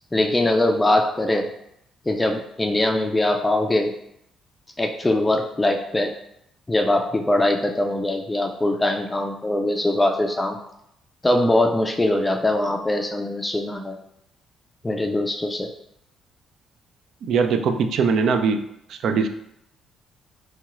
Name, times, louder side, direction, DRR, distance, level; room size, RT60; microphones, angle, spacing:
voice 1, 0.1-1.5 2.1-4.0 4.8-6.1 6.7-10.6 11.2-14.0 14.8-15.7, left 1 dB, 20° left, 3 dB, 0.3 m, -22 dB
voice 2, 17.2-18.6 18.9-19.3, right 5 dB, 70° right, 7 dB, 0.3 m, -21 dB
3.1 x 2.9 x 2.4 m, 0.76 s
supercardioid pair, 60°, 0 cm